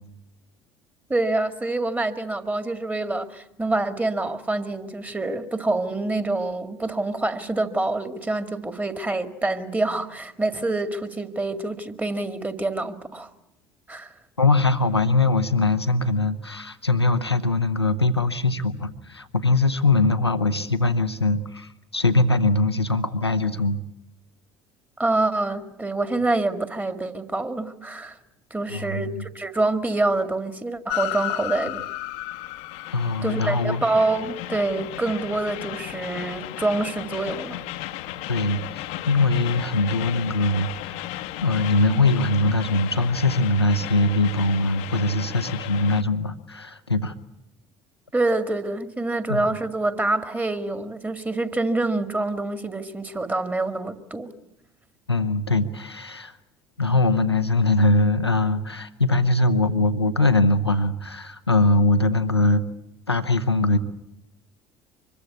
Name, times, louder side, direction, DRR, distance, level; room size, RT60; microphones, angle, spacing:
voice 1, 1.1-13.3 13.9-14.1 25.0-28.2 28.5-31.8 33.2-37.6 48.1-54.3, right 2 dB, 10° right, 2.1 m, -26 dB
voice 2, 14.4-23.8 28.7-29.2 32.9-33.8 38.3-41.1 41.4-47.1 49.3-49.4 55.1-56.3 56.8-62.6 63.1-63.8, left 2 dB, 90° left, 0.9 m, -22 dB
Train, 30.9-46.0, left 15 dB, 60° left, 1.0 m, -34 dB
25.5 x 22.0 x 8.4 m
figure-of-eight pair, 60°, 13 cm